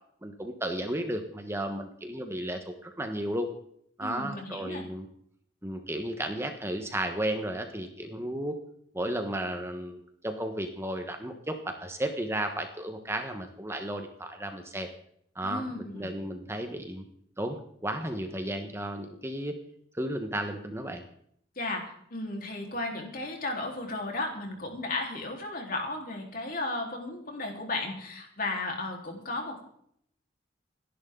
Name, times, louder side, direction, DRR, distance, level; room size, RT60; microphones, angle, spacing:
voice 1, 0.2-3.5 4.0-5.1 5.6-8.6 8.9-14.9 15.3-17.0 17.4-19.5 19.9-21.0, right 1 dB, 15° right, 5 dB, 1.3 m, -34 dB
voice 2, 4.0-4.8 15.4-16.1 21.6-29.6, left 2 dB, 50° left, 1 dB, 4.0 m, -34 dB
28.5 x 11.0 x 3.9 m, 0.68 s
head